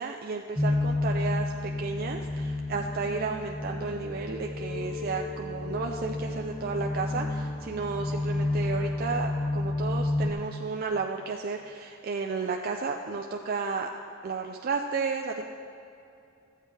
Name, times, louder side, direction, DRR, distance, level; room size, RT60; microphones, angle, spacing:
voice 1, 0.0-13.9 14.2-15.4, right 4 dB, 45° right, 2 dB, 0.4 m, -33 dB
sound 1, 0.6-10.3, left 2 dB, 5° left, 0.6 m, -31 dB
13.5 x 8.2 x 3.3 m, 2.6 s
head